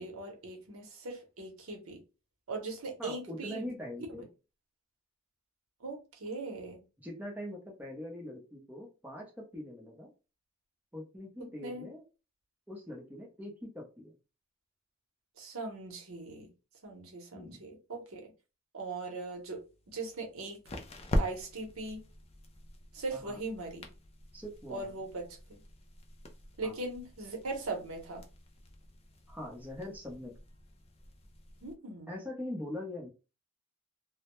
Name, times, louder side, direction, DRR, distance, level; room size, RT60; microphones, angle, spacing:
voice 1, 0.0-2.0 2.5-3.7 5.8-6.8 11.6-11.9 15.4-16.5 16.8-18.3 18.7-19.6 19.9-20.6 21.2-22.0 22.9-23.9 24.7-25.2 25.5-25.6 26.6-28.2 31.6-32.1, right 3 dB, 70° right, 0.8 m, -40 dB
voice 2, 3.0-4.2 7.0-10.1 10.9-12.0 12.7-14.2 17.3-17.6 23.1-23.4 24.3-24.9 26.6-26.8 29.3-30.3 32.1-33.1, left 1 dB, 5° right, 0.6 m, -42 dB
sound 1, 19.3-31.7, left 1 dB, 25° left, 0.3 m, -42 dB
2.1 x 2.0 x 2.9 m
head